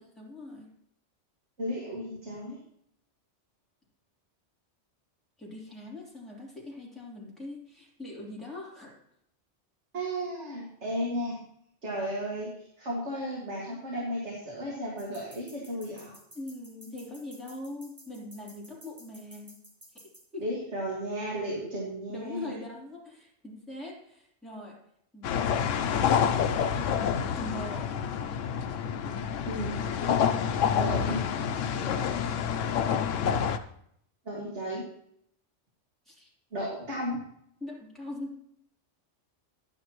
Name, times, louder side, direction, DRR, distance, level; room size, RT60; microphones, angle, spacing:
voice 1, 0.1-0.7 5.4-8.9 16.3-19.6 20.3-20.4 22.1-24.7 25.1-27.9 31.5-32.4 36.1-36.3 37.6-38.3, left 2 dB, ahead, -6 dB, 3.5 m, -42 dB
voice 2, 1.6-2.6 9.9-11.4 11.8-12.5 12.8-16.1 20.4-22.6 29.5-29.7 30.8-31.3 34.3-34.8 36.5-37.3, equal, 70° right, -4 dB, 2.4 m, -34 dB
sound 1, 15.0-20.2, right 1 dB, 25° right, 2.4 m, -52 dB
sound 2, 25.2-33.6, left 7 dB, 90° left, 1.0 m, -28 dB
11.5 x 9.9 x 3.1 m, 0.69 s
omnidirectional pair, 1.2 m